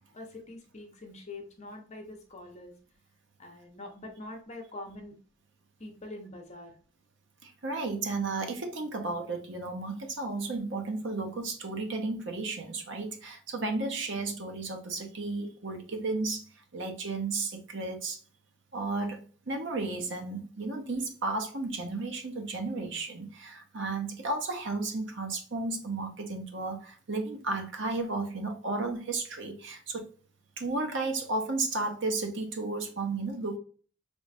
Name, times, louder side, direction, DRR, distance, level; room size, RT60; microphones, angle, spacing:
voice 1, 0.1-2.7 3.4-5.2 5.8-6.8, left 2 dB, 30° left, 2 dB, 0.9 m, -44 dB
voice 2, 7.4-16.4 16.7-18.2 18.7-30.0 30.6-33.6, right 3 dB, 55° right, 4 dB, 0.8 m, -33 dB
3.5 x 3.1 x 2.5 m, 0.41 s
head